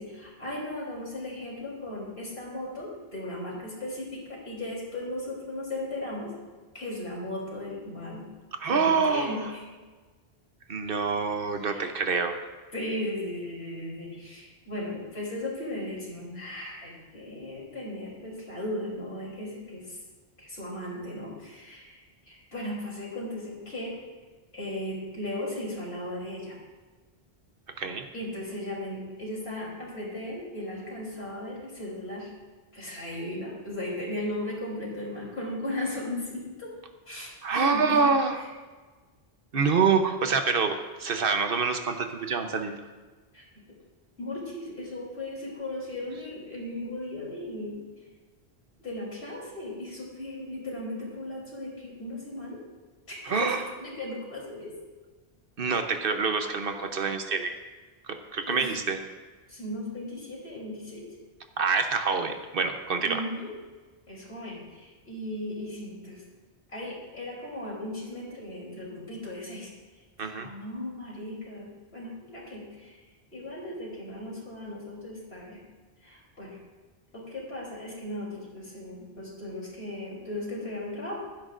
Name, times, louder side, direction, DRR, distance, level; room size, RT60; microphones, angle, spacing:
voice 1, 0.0-6.3 6.7-8.2 8.6-9.6 11.6-11.9 12.7-20.0 20.4-22.0 22.3-24.0 24.5-26.6 28.1-32.3 32.7-36.7 37.1-38.1 38.3-38.5 43.3-43.4 44.2-47.8 48.8-52.6 53.1-54.7 58.5-58.7 59.5-61.1 63.0-63.5 64.1-66.2 66.7-69.7 70.2-73.0 73.3-75.6 76.0-76.6 77.1-81.2, left 1 dB, 80° left, -4 dB, 3.7 m, -36 dB
voice 2, 8.6-9.4 10.7-12.4 27.8-28.1 37.4-38.4 39.5-42.8 53.3-53.6 55.6-57.6 58.1-59.0 61.6-63.2 70.2-70.5, right 5 dB, 65° right, 6 dB, 1.0 m, -26 dB
15.5 x 12.0 x 2.5 m, 1.3 s
omnidirectional pair, 1.0 m